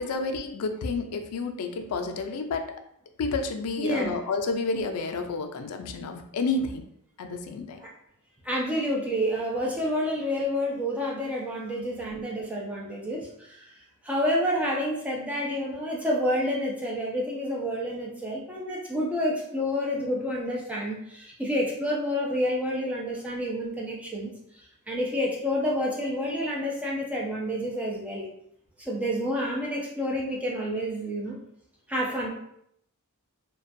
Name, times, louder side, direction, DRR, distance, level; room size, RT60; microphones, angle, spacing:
voice 1, 0.0-2.7 3.2-6.8 7.2-7.8, left 3 dB, 85° left, 6 dB, 0.4 m, -30 dB
voice 2, 3.8-4.1 7.8-7.9 8.4-13.7 14.0-24.3 24.9-28.3 28.8-31.4 31.9-32.3, equal, 5° right, -4 dB, 0.5 m, -29 dB
2.5 x 2.2 x 2.5 m, 0.72 s
head